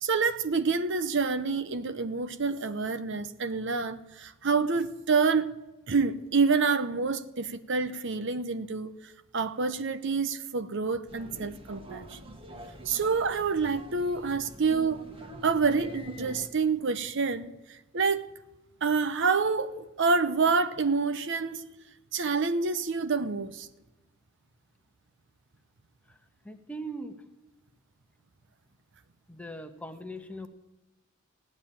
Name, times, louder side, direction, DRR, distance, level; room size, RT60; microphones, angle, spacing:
voice 1, 0.0-5.5 5.9-8.9 9.3-12.4 12.9-15.0 15.4-18.2 18.8-21.7 22.1-23.7, right 4 dB, 60° right, 0.8 m, -27 dB
sound 1, 11.1-16.5, right 1 dB, 25° right, 1.5 m, -45 dB
voice 2, 26.4-27.2 29.3-30.5, right 1 dB, 5° left, 1.1 m, -40 dB
16.5 x 9.7 x 8.8 m
head